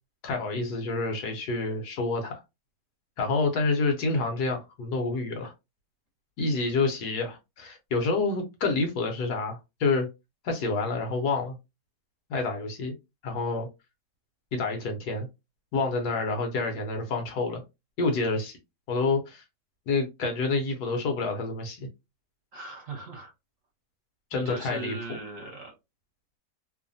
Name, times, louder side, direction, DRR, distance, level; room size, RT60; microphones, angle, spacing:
voice 1, 0.2-2.4 3.2-5.5 6.4-10.1 10.4-11.6 12.3-12.9 13.2-13.7 14.5-15.3 15.7-17.6 18.0-18.6 18.9-19.4 19.9-21.9 24.3-25.0, left 3 dB, 70° left, 1.3 m, -28 dB
voice 2, 22.5-23.3 24.3-25.7, right 2 dB, 55° right, 1.2 m, -39 dB
3.1 x 2.1 x 2.5 m
omnidirectional pair, 1.8 m